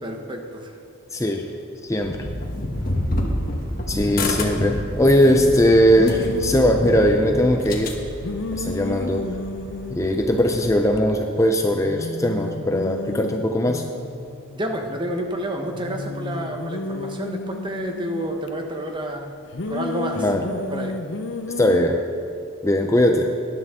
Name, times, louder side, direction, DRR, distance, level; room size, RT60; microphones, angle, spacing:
voice 1, 0.0-0.8 14.5-19.3 19.7-20.3 20.7-20.9, right 1 dB, 25° right, 3 dB, 1.0 m, -29 dB
voice 2, 1.1-1.5 1.8-2.3 3.9-7.9 8.5-9.3 9.9-13.8 20.2-20.5 21.6-22.1 22.6-23.3, equal, 15° left, 3 dB, 0.6 m, -19 dB
sound 1, 2.0-8.0, left 1 dB, 45° left, 1.3 m, -28 dB
sound 2, 2.7-11.0, right 1 dB, 85° right, 1.7 m, -40 dB
sound 3, 6.0-7.7 8.2-11.1 11.4-11.5 11.7-15.2 15.7-18.5 19.5-21.8, left 3 dB, 60° left, 0.6 m, -32 dB
18.5 x 10.5 x 3.7 m, 2.4 s
head